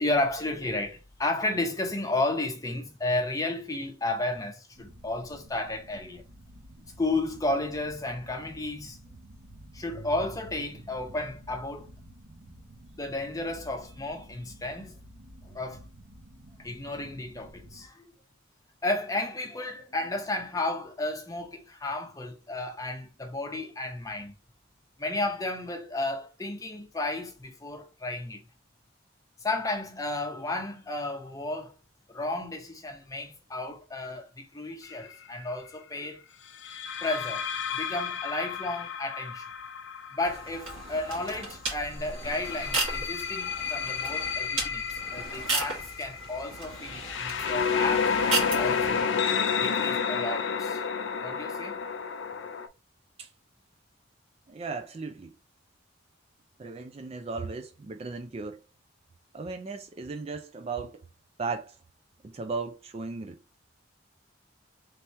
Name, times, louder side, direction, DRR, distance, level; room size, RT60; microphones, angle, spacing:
voice 1, 0.0-6.2 7.0-9.0 9.7-11.9 13.0-15.0 15.5-15.8 16.6-18.0 18.8-24.4 25.0-28.4 29.4-31.7 32.1-36.2 37.0-37.4 37.7-39.5 40.1-44.8 45.1-49.1 49.6-50.8 51.2-51.8, left 2 dB, 15° left, 0.7 m, -33 dB
sound 1, 4.7-17.9, right 1 dB, 60° right, 0.9 m, -50 dB
sound 2, 34.8-35.1 36.6-41.4 42.2-52.7, left 6 dB, 65° left, 0.4 m, -31 dB
sound 3, 40.2-49.0, right 3 dB, 85° right, 1.7 m, -35 dB
voice 2, 54.5-55.3 56.6-58.6 59.3-61.0 61.4-61.8 62.2-63.4, right 4 dB, 30° right, 0.3 m, -36 dB
3.3 x 2.9 x 4.4 m
head